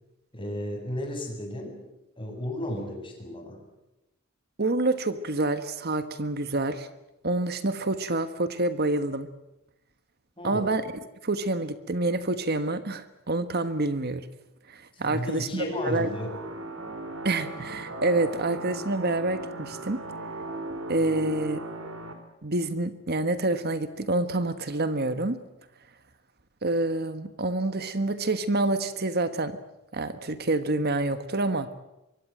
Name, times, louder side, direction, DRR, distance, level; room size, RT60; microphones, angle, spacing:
voice 1, 0.3-1.8 2.2-3.6 10.4-10.7 15.0-16.3, left 1 dB, 25° left, 2 dB, 7.7 m, -33 dB
voice 2, 4.6-6.9 7.2-9.3 10.4-14.3 14.7-16.1 17.2-20.0 20.9-21.7 22.4-25.4 26.6-29.6 29.9-31.7, right 2 dB, 50° right, 11 dB, 1.4 m, -27 dB
sound 1, 16.0-22.1, right 2 dB, 80° right, 4.2 m, -38 dB
25.5 x 23.5 x 7.8 m, 0.94 s
head